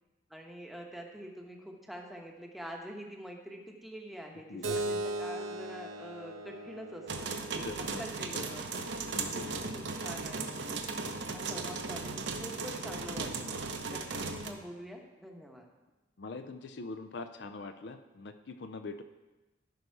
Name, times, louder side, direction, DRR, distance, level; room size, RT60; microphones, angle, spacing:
voice 1, 0.3-7.7 8.0-9.2 9.5-10.9 11.3-13.6 13.9-15.7, equal, ahead, 1 dB, 0.9 m, -46 dB
voice 2, 4.5-4.8 7.6-8.0 8.3-8.6 9.1-9.6 16.2-19.0, left 3 dB, 60° left, 8 dB, 0.5 m, -43 dB
Keyboard (musical), 4.6-9.7, right 2 dB, 90° right, 1.1 m, -39 dB
sound 1, 7.1-14.5, right 4 dB, 65° right, 0.9 m, -37 dB
14.0 x 5.4 x 4.6 m, 1.1 s
head